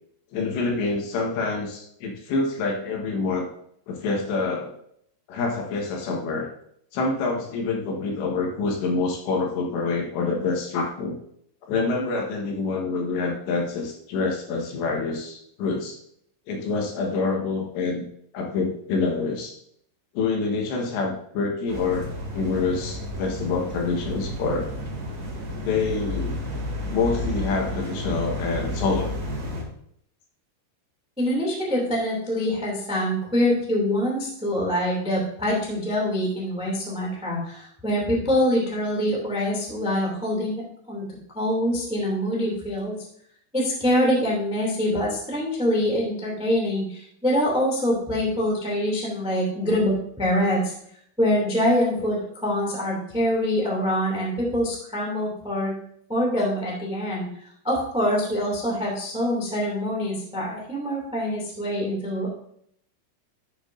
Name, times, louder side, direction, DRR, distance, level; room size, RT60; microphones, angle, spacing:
voice 1, 0.3-3.5 3.9-4.7 5.3-6.5 6.9-11.2 11.7-16.0 16.5-18.0 18.3-19.6 20.1-22.1 22.3-24.7 25.6-26.4 26.9-29.2, left 4 dB, 70° left, 1 dB, 3.3 m, -26 dB
sound 1, 21.7-29.6, left 1 dB, 35° right, 1.6 m, -31 dB
voice 2, 31.2-40.6 40.9-41.0 41.3-42.9 43.5-50.7 51.2-55.7 56.1-57.3 57.6-62.3, equal, 5° right, -3 dB, 0.4 m, -24 dB
13.0 x 7.0 x 2.7 m, 0.69 s
omnidirectional pair, 5.7 m